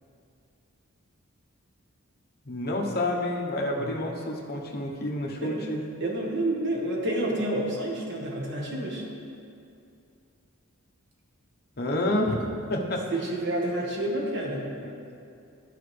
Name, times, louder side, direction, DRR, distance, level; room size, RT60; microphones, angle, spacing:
voice 1, 2.4-5.8 11.8-13.0 14.8-15.1, left 1 dB, 45° left, 0 dB, 1.0 m, -29 dB
voice 2, 5.4-9.0 13.1-14.7, right 1 dB, 55° right, -2 dB, 1.4 m, -29 dB
13.5 x 4.9 x 3.3 m, 2.6 s
head